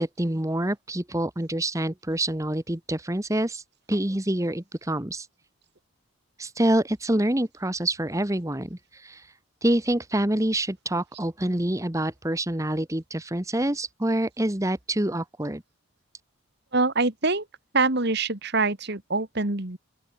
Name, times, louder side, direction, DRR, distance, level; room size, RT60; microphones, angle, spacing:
voice 1, 0.0-3.6 3.9-5.3 6.4-9.3 9.6-15.6, right 1 dB, 15° right, 1.1 m, -26 dB
voice 2, 16.7-17.5 17.7-19.8, right 3 dB, 50° right, 2.0 m, -24 dB
open air
head